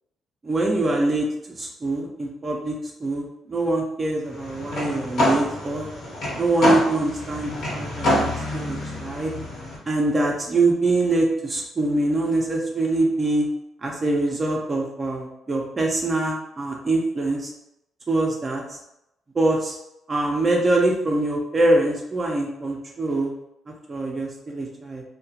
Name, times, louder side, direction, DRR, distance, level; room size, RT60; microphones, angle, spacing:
voice 1, 0.4-1.3 1.6-5.9 6.4-9.3 9.9-13.5 13.8-17.5 18.1-18.8 19.3-19.8 20.1-23.3 23.9-25.0, right 2 dB, 25° right, -1 dB, 0.4 m, -24 dB
sound 1, 4.3-9.8, left 1 dB, 65° left, 0.9 m, -26 dB
2.2 x 2.1 x 2.7 m, 0.83 s
cardioid pair, 125°, 0 cm